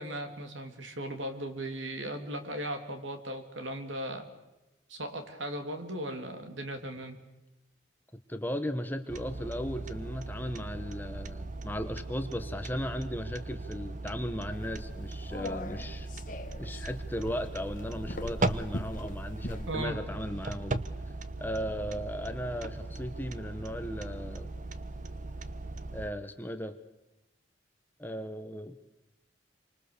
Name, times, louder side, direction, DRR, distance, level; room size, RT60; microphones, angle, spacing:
voice 1, 0.0-4.3 4.9-7.2 19.7-20.0, right 1 dB, 80° right, 6 dB, 3.4 m, -37 dB
voice 2, 8.3-16.1 16.6-20.8 21.4-24.5 25.9-26.7 28.0-28.7, equal, 10° left, 8 dB, 1.3 m, -36 dB
sound 1, 9.1-26.1, right 2 dB, 40° right, 1.0 m, -38 dB
sound 2, 14.5-19.7, left 2 dB, 45° left, 1.5 m, -42 dB
28.0 x 25.0 x 6.9 m, 0.99 s
head